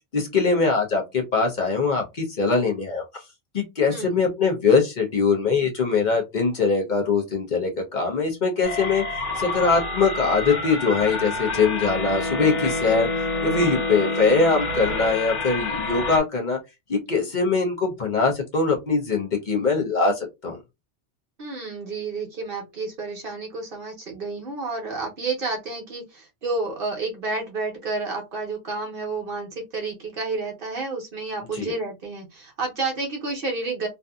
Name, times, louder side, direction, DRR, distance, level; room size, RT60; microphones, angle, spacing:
voice 1, 0.1-3.2 3.5-9.0 9.4-13.1 13.4-16.6 16.9-20.6 31.5-31.7, left 4 dB, 45° left, 0.7 m, -22 dB
voice 2, 3.8-4.2 21.4-33.9, right 3 dB, 55° right, 0.9 m, -30 dB
sound 1, 8.6-16.2, left 2 dB, 80° left, 1.5 m, -28 dB
2.6 x 2.5 x 2.3 m
omnidirectional pair, 1.2 m